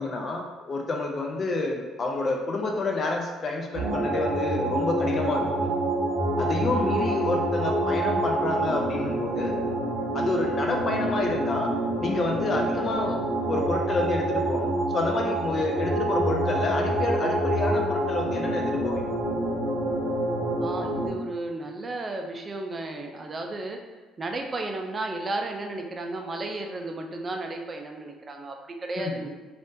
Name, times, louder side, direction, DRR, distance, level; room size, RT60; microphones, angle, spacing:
voice 1, 0.0-5.7 6.4-9.6 10.1-11.7 12.0-13.2 13.5-19.0 29.0-29.2, left 3 dB, 45° left, 2 dB, 0.5 m, -29 dB
sound 1, 3.7-21.1, right 1 dB, 70° right, 0.8 m, -27 dB
voice 2, 20.6-23.8 24.2-29.3, right 2 dB, 35° right, 3 dB, 0.4 m, -33 dB
3.4 x 2.5 x 2.6 m, 1.3 s
supercardioid pair, 65°, 0 cm